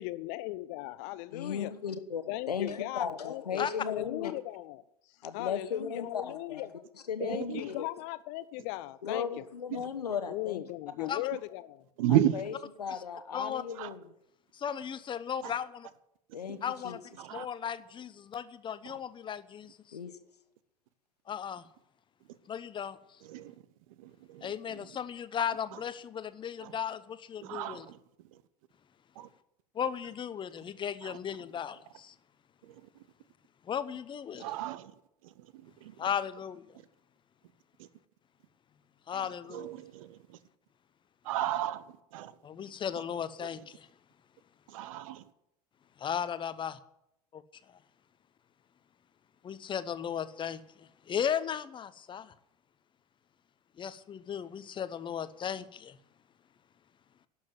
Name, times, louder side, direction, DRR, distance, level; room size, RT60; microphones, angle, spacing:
voice 1, 0.0-1.7 2.3-4.8 5.3-6.7 7.2-9.4 10.3-11.8, left 18 dB, 45° left, 0.5 m, -38 dB
voice 2, 1.3-4.3 5.2-6.6 7.1-7.9 9.0-10.6 11.0-11.1 12.1-14.0 16.3-17.0 19.9-20.2, left 7 dB, 75° left, 1.1 m, -36 dB
voice 3, 7.2-7.6 9.7-9.8 12.0-12.4 13.8-13.9 15.4-15.5 16.5-16.6 17.2-17.5 23.3-23.5 24.0-24.8 26.6-26.7 27.4-28.0 29.2-29.3 31.0-31.2 32.6-32.7 34.4-34.9 35.6-35.9 37.8-37.9 39.5-40.2 41.2-41.8 42.1-42.3 44.7-45.2, right 12 dB, 55° right, 0.9 m, -33 dB
voice 4, 13.3-13.6 14.6-15.9 16.6-17.0 17.3-20.0 21.3-21.6 22.5-23.0 24.4-27.9 29.7-32.1 33.6-34.5 36.0-36.8 39.1-39.7 42.4-43.9 46.0-46.8 47.3-47.4 49.4-52.3 53.8-56.0, left 8 dB, 25° left, 0.8 m, -36 dB
11.5 x 7.4 x 9.3 m
figure-of-eight pair, 75°, 20 cm